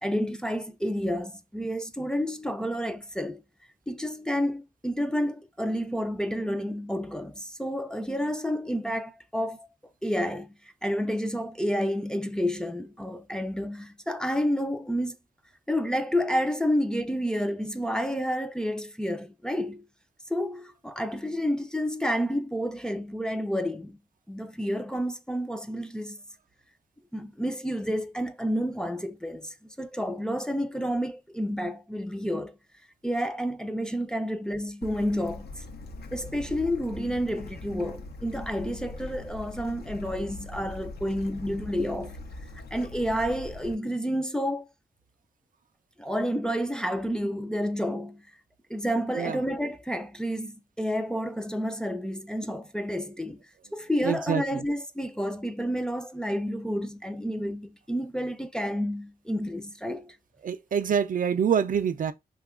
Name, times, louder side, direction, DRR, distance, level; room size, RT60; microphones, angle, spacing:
voice 1, 0.0-3.4 3.9-9.7 10.0-10.5 10.8-15.2 15.7-19.9 20.3-24.0 24.3-26.2 27.1-32.6 33.0-35.6 36.1-42.2 42.7-44.7 46.0-48.2 48.7-53.4 53.7-60.2, equal, 5° left, 0.4 m, -30 dB
Bird / Stream, 34.8-43.7, left 2 dB, 75° left, 0.6 m, -41 dB
voice 2, 54.0-54.6 60.4-62.1, right 7 dB, 55° right, 0.4 m, -26 dB
2.9 x 2.3 x 3.5 m
cardioid pair, 65°, 16 cm